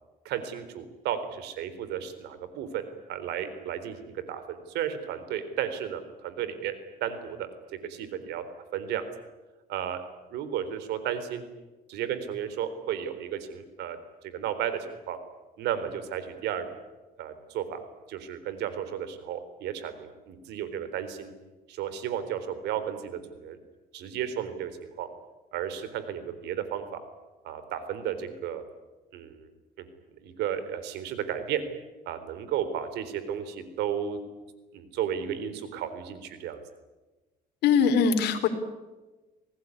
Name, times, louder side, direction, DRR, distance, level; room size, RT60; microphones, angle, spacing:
voice 1, 0.2-2.8 3.1-6.7 7.0-7.5 7.8-8.4 8.7-9.1 9.7-10.0 10.3-11.4 11.9-14.0 14.2-15.2 15.6-16.6 17.2-17.8 18.1-21.3 21.7-23.6 23.9-25.1 25.5-27.0 27.4-28.6 29.1-29.5 29.8-29.9 30.2-31.6 32.1-34.2 34.7-36.6, right 9 dB, 85° right, 11 dB, 3.9 m, -33 dB
voice 2, 37.6-38.5, left 6 dB, 80° left, 8 dB, 3.7 m, -21 dB
26.5 x 19.0 x 9.8 m, 1.2 s
cardioid pair, 110°, 17 cm